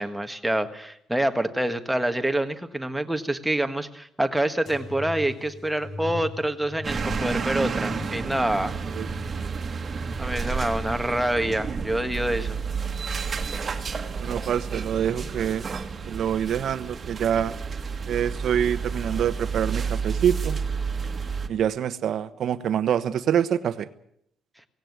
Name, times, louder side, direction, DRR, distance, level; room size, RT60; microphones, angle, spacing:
voice 1, 0.0-8.7 10.2-12.6, right 1 dB, 5° right, 7 dB, 1.6 m, -26 dB
sound 1, 4.7-11.9 12.4-13.2 13.9-14.5 15.4-15.5, left 2 dB, 55° left, 6.8 m, -41 dB
sound 2, 6.8-21.5, right 5 dB, 30° right, 1.9 m, -30 dB
voice 2, 14.2-15.6 16.1-17.5 18.1-20.6 21.5-23.9, right 9 dB, 60° right, 11 dB, 1.2 m, -25 dB
18.0 x 17.0 x 9.5 m, 0.71 s
cardioid pair, 130°, 0 cm